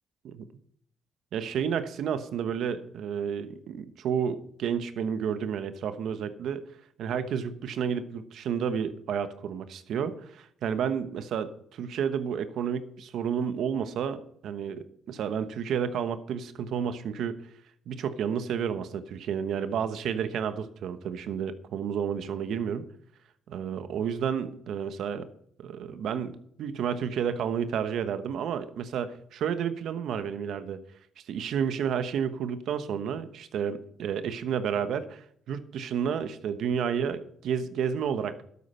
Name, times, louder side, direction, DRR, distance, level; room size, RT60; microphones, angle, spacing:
voice 1, 1.3-6.6 7.0-17.4 17.9-22.8 23.5-25.3 25.6-30.8 31.3-38.4, right 7 dB, 75° right, 11 dB, 1.1 m, -31 dB
12.5 x 8.4 x 5.6 m, 0.67 s
cardioid pair, 90°, 0 cm